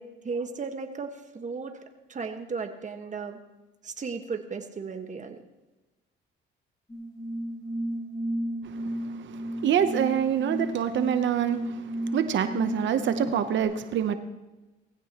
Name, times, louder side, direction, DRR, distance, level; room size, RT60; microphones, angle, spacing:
voice 1, 0.0-1.8 2.1-3.4 3.8-5.4, right 4 dB, 40° right, 5 dB, 1.5 m, -35 dB
sound 1, 6.9-13.6, right 1 dB, 15° left, 3.8 m, -33 dB
voice 2, 8.6-14.2, right 9 dB, 70° right, 9 dB, 0.9 m, -26 dB
19.0 x 15.5 x 3.0 m, 1.1 s
cardioid pair, 90°, 20 cm